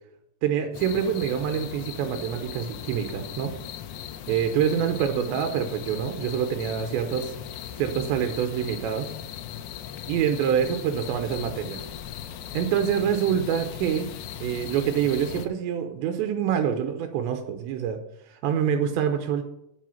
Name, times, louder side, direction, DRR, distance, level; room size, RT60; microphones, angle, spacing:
voice 1, 0.4-3.5 4.3-7.2 7.8-9.1 10.1-11.9 12.5-14.1 14.4-18.0 18.3-19.4, right 8 dB, 80° right, 6 dB, 3.0 m, -26 dB
sound 1, 0.7-15.5, left 9 dB, 80° left, 2.7 m, -38 dB
7.7 x 7.6 x 7.0 m, 0.79 s
omnidirectional pair, 5.2 m